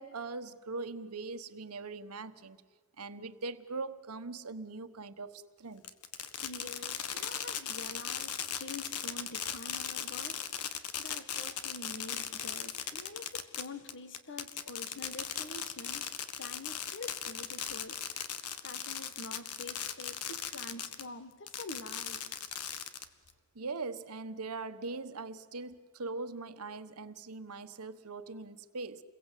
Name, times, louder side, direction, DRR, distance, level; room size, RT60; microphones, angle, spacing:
voice 1, 0.0-2.6 3.0-5.8 23.5-29.0, right 3 dB, 80° right, 1.3 m, -41 dB
Fireworks, 5.8-21.1 21.5-23.3, left 9 dB, 85° left, 1.6 m, -38 dB
voice 2, 6.4-16.1 16.3-18.1 18.6-22.4, left 2 dB, 55° left, 1.7 m, -47 dB
29.0 x 22.0 x 8.4 m
head